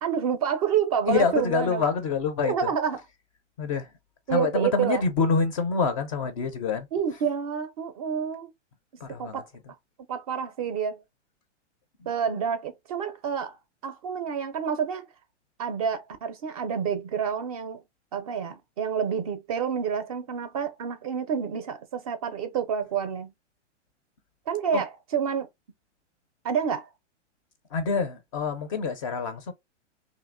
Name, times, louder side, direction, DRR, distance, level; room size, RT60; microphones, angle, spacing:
voice 1, 0.0-1.8 2.4-3.0 4.3-5.0 6.9-8.5 9.2-9.5 10.1-11.0 12.1-13.6 13.8-15.1 15.6-17.8 18.1-23.3 24.5-25.5 26.4-26.9, right 7 dB, 30° right, 0.4 m, -28 dB
voice 2, 1.1-2.7 3.6-3.9 4.3-6.9 9.0-9.4 24.7-24.8 27.7-29.5, left 5 dB, 30° left, 0.4 m, -26 dB
2.8 x 2.5 x 2.4 m
hypercardioid pair, 130°, 36 cm